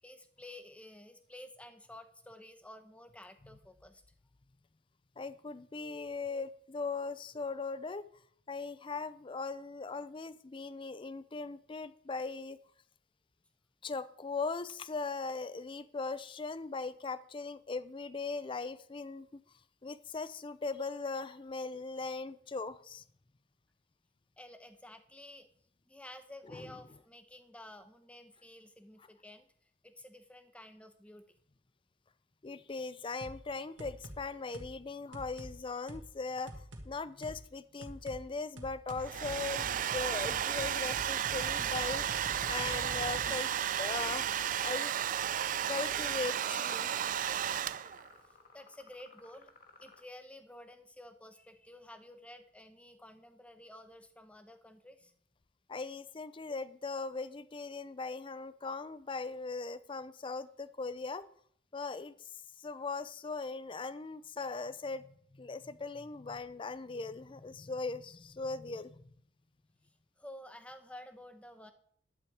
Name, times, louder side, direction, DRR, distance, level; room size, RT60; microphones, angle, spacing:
voice 1, 0.0-4.0 24.4-25.5 25.8-29.5 29.8-31.2 48.3-49.5 49.8-55.1 70.2-71.7, left 1 dB, 5° left, 8 dB, 0.8 m, -52 dB
voice 2, 5.2-8.1 8.5-12.6 13.8-19.4 19.8-23.0 26.5-26.8 32.4-42.1 42.5-43.5 43.8-44.9 45.7-46.9 55.7-61.3 61.7-62.3 62.6-69.1, left 4 dB, 25° left, 15 dB, 0.4 m, -39 dB
sound 1, 33.2-33.4 33.8-34.2 34.5-34.7 35.1-35.5 35.9-36.0 36.5-36.9 37.2-37.4 37.8-38.2 38.6-43.9, right 1 dB, 75° right, 1.9 m, -46 dB
Domestic sounds home sounds, 38.9-48.1, right 10 dB, 45° right, 0.3 m, -33 dB
sound 2, 44.0-50.0, left 4 dB, 55° left, 1.5 m, -59 dB
11.5 x 8.6 x 4.7 m, 0.63 s
head